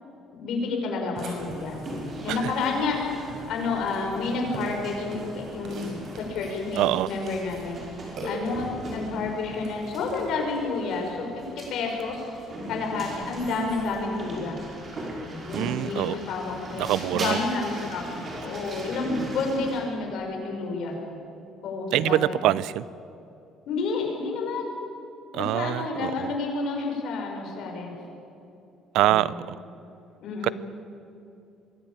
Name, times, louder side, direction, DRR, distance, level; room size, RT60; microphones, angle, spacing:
voice 1, 0.3-1.8 2.2-3.0 3.5-5.9 6.1-7.8 8.2-14.6 15.2-18.0 18.4-20.9 21.6-22.4 23.7-24.7 25.3-27.9 29.0-29.4 30.2-30.5, left 3 dB, 65° left, 1 dB, 5.9 m, -30 dB
Burping eructation, 1.2-10.2, right 1 dB, 55° right, 6.3 m, -41 dB
sound 1, 1.8-19.8, right 1 dB, 35° right, 5.5 m, -40 dB
voice 2, 6.8-7.1 15.5-16.1 16.8-17.4 21.9-22.8 25.3-26.3 28.9-29.6 30.4-30.5, right 14 dB, 80° right, 19 dB, 0.5 m, -24 dB
23.5 x 16.5 x 9.0 m, 2.7 s
cardioid pair, 140°, 0 cm